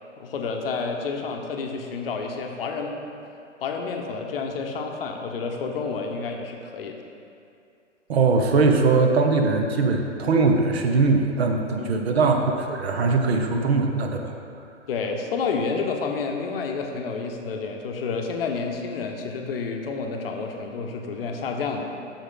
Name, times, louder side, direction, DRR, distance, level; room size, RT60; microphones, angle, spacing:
voice 1, 0.2-3.0 3.6-7.0 11.8-12.1 14.9-21.9, left 4 dB, 50° left, 3 dB, 0.8 m, -29 dB
voice 2, 8.1-14.3, right 4 dB, 55° right, 4 dB, 0.8 m, -21 dB
6.5 x 6.3 x 3.8 m, 2.5 s
figure-of-eight pair, 115°, 38 cm